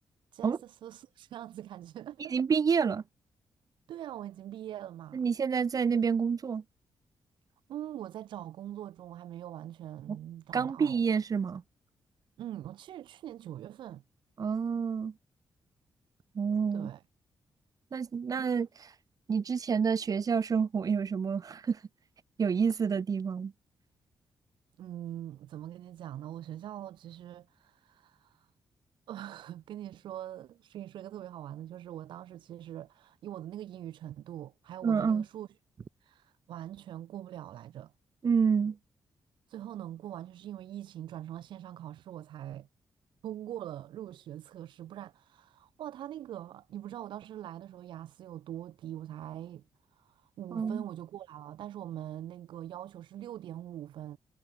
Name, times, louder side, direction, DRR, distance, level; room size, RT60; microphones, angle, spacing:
voice 1, 0.3-2.4 3.9-5.3 7.7-11.0 12.4-14.0 16.7-17.0 24.8-28.5 29.1-35.5 36.0-37.9 39.5-42.7 43.2-49.6 49.9-54.2, right 12 dB, 90° right, 3.2 m, -43 dB
voice 2, 2.3-3.0 5.1-6.6 10.1-10.2 10.5-11.6 14.4-15.1 16.3-16.9 17.9-18.9 19.3-21.8 22.4-23.5 34.8-35.2 38.2-38.8 50.5-50.8, right 6 dB, 50° right, 1.6 m, -28 dB
cardioid pair, 75°, 8 cm